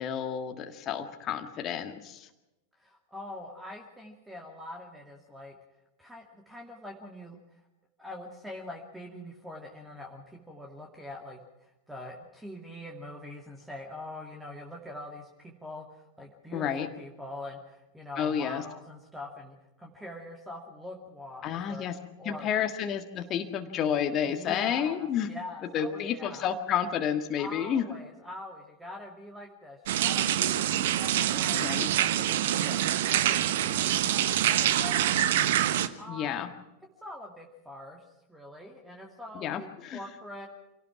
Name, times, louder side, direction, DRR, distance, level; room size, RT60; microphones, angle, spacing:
voice 1, 0.0-2.3 16.5-16.9 18.2-18.6 21.4-22.0 22.3-25.3 25.7-27.8 31.5-31.9 36.1-36.5 39.4-40.0, left 8 dB, 30° left, 6 dB, 1.7 m, -30 dB
voice 2, 2.8-5.6 6.0-7.6 8.0-21.8 22.2-22.5 24.2-26.5 27.4-32.8 33.1-36.5 37.0-38.0 38.3-40.5, left 1 dB, 5° right, 1 dB, 2.4 m, -44 dB
sound 1, 29.9-35.9, right 11 dB, 55° right, 1.1 m, -26 dB
26.5 x 18.0 x 6.0 m, 0.96 s
figure-of-eight pair, 90°, 0 cm